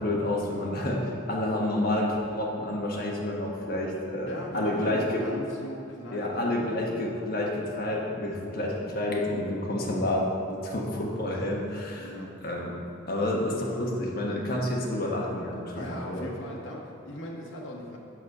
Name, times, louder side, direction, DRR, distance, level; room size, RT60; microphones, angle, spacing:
voice 1, 0.0-5.2 6.1-12.1 12.4-12.7 13.1-16.3, left 1 dB, 50° left, -2 dB, 1.3 m, -29 dB
voice 2, 4.3-7.3 12.0-12.4 15.7-18.0, equal, 85° left, -2 dB, 1.1 m, -40 dB
6.2 x 6.2 x 5.4 m, 2.6 s
head